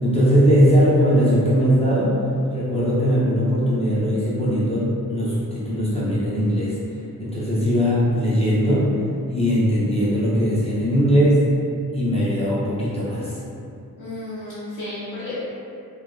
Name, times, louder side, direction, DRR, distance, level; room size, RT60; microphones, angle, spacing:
voice 1, 0.0-2.2 2.5-6.7 7.2-8.9 9.3-11.4 11.9-13.4, equal, 15° left, -9 dB, 0.4 m, -19 dB
voice 2, 14.0-15.4, left 2 dB, 65° left, -11 dB, 0.6 m, -32 dB
2.9 x 2.1 x 2.3 m, 2.5 s
wide cardioid pair, 160°, 37 cm